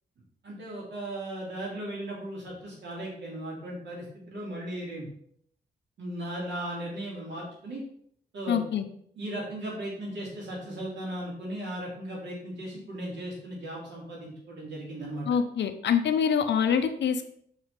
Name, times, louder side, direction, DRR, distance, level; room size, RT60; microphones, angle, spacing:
voice 1, 0.4-5.1 6.0-7.8 8.3-8.6 9.1-15.2, right 1 dB, 90° right, -4 dB, 3.4 m, -37 dB
voice 2, 8.5-8.8 15.3-17.2, left 7 dB, 85° left, 8 dB, 0.8 m, -25 dB
6.7 x 5.6 x 4.4 m, 0.66 s
wide cardioid pair, 140°, 18 cm